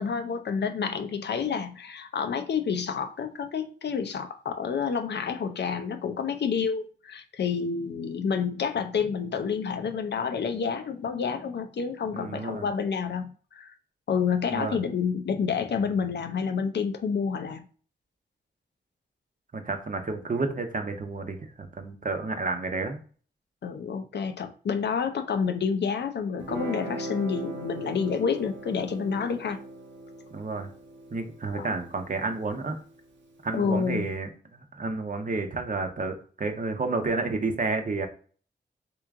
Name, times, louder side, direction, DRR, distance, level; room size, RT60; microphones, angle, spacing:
voice 1, 0.0-13.7 14.1-17.6 23.6-29.6 31.5-31.7 33.5-34.1, left 6 dB, 65° left, 0.5 m, -29 dB
voice 2, 12.1-12.7 14.5-14.8 19.5-23.0 30.3-30.7 31.1-32.8 33.4-38.1, right 3 dB, 45° right, 0.8 m, -31 dB
Guitar, 26.4-33.5, right 1 dB, 90° right, 0.9 m, -40 dB
3.5 x 3.0 x 3.6 m
cardioid pair, 65°, 19 cm